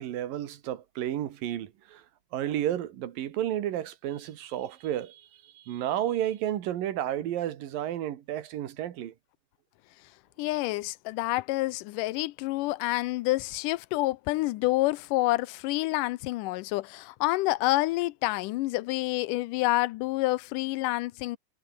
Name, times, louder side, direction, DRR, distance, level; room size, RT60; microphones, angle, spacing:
voice 1, 0.0-2.1 2.3-9.1, right 11 dB, 85° right, 3.4 m, -32 dB
voice 2, 10.4-21.4, left 19 dB, 80° left, 2.1 m, -28 dB
omnidirectional pair, 3.9 m